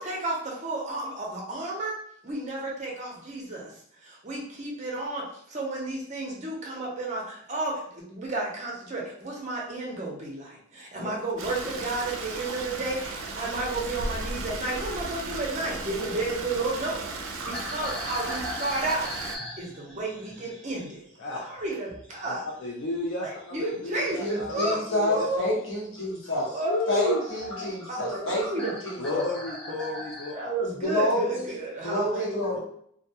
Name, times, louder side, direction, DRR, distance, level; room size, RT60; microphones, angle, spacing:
voice 1, 0.0-2.0 2.2-3.7 4.0-19.1 19.6-21.0 21.3-22.4 23.2-24.8 25.1-25.5 26.5-28.8 30.3-32.6, right 2 dB, 35° right, -2 dB, 0.6 m, -32 dB
Stream, 11.4-19.4, right 3 dB, 85° right, 0.4 m, -36 dB
sound 1, 17.4-22.2 22.5-24.6 25.2-25.5 26.0-26.1 26.7-26.8 27.0-30.3, equal, 5° left, 0.5 m, -40 dB
voice 2, 22.3-25.3 26.6-27.2 29.0-30.3 32.5-32.6, left 2 dB, 65° left, -1 dB, 0.4 m, -32 dB
voice 3, 24.2-26.6 26.9-29.2 30.8-31.5 31.8-32.6, left 1 dB, 80° left, -5 dB, 1.1 m, -28 dB
2.3 x 2.2 x 2.7 m, 0.66 s
head